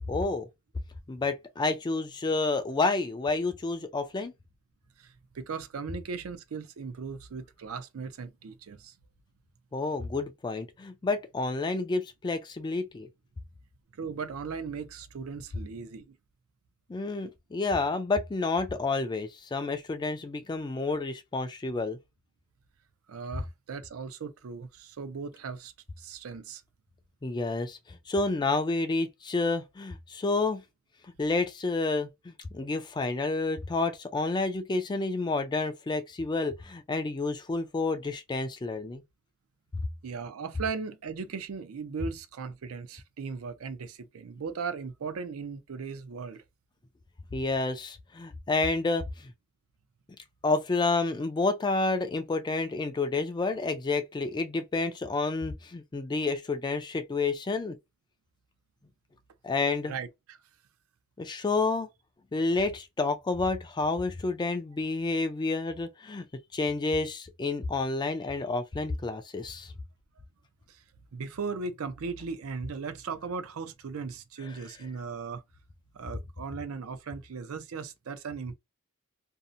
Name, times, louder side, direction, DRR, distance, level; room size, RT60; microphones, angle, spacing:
voice 1, 0.1-0.5 1.1-4.3 9.7-13.1 16.9-22.0 27.2-30.6 31.0-39.0 39.7-39.9 47.3-49.3 50.4-57.8 59.4-59.9 61.2-61.9 62.3-66.3 66.5-69.7 74.5-74.6, left 3 dB, 20° left, 0.3 m, -29 dB
voice 2, 5.0-8.9 14.0-16.0 23.1-26.6 40.0-46.4 59.8-60.4 70.7-70.8 71.1-75.4 75.9-78.6, right 5 dB, 70° right, 0.5 m, -37 dB
2.6 x 2.0 x 2.5 m
head